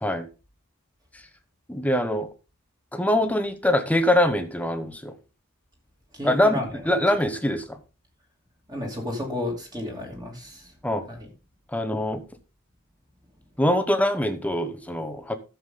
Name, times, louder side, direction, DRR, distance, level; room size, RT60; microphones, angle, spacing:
voice 1, 1.7-2.3 2.9-5.1 6.2-6.6 6.9-7.8 10.8-11.0 11.7-12.2 13.6-15.4, left 1 dB, 5° left, 1.0 m, -23 dB
voice 2, 6.1-6.8 8.7-10.7 11.1-11.3, left 1 dB, 20° right, 2.9 m, -32 dB
13.0 x 7.3 x 3.8 m
head